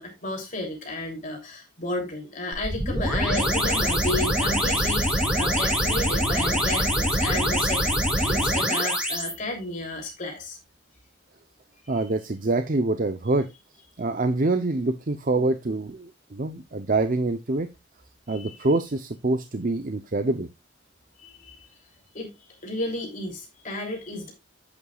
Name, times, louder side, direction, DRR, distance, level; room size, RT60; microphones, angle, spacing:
voice 1, 0.0-10.6 11.8-12.1 18.3-18.7 21.2-21.7 22.1-22.3 22.6-24.3, left 2 dB, 40° left, 1 dB, 3.1 m, -33 dB
sound 1, 2.5-9.3, equal, 5° right, 3.5 m, -24 dB
voice 2, 11.9-13.5 14.0-17.7 18.3-20.5, right 2 dB, 45° right, 9 dB, 0.7 m, -25 dB
11.0 x 8.5 x 2.4 m, 0.22 s
head